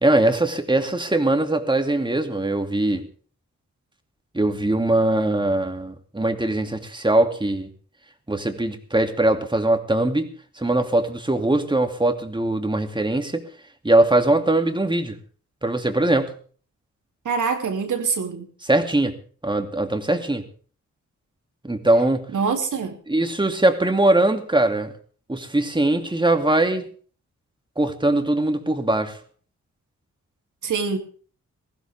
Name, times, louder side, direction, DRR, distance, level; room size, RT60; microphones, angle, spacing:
voice 1, 0.0-3.1 4.3-7.7 8.3-10.3 10.6-13.4 13.8-15.2 15.6-16.3 18.7-19.2 19.4-20.4 21.6-22.3 23.1-24.9 25.3-26.9 27.8-29.2, right 2 dB, 15° right, 6 dB, 2.6 m, -21 dB
voice 2, 17.2-18.5 22.3-23.0 30.6-31.0, right 5 dB, 80° right, 5 dB, 3.0 m, -24 dB
20.0 x 15.5 x 3.6 m, 0.42 s
cardioid pair, 70°, 30 cm